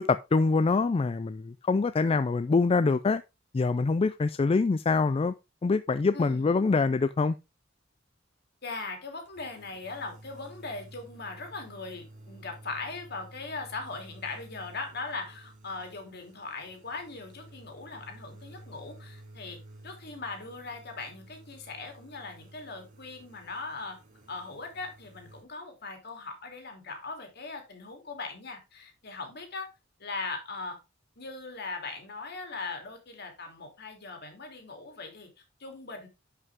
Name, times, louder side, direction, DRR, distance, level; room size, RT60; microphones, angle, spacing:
voice 1, 0.0-3.2 3.5-5.3 5.6-7.4, left 4 dB, 30° left, 0.3 m, -25 dB
voice 2, 6.1-6.6 8.6-19.6 19.8-24.0 24.3-29.7 30.0-30.8 31.2-36.1, left 3 dB, 55° left, 2.9 m, -40 dB
sound 1, 9.2-25.4, right 1 dB, 45° right, 3.2 m, -52 dB
11.0 x 5.5 x 3.5 m
head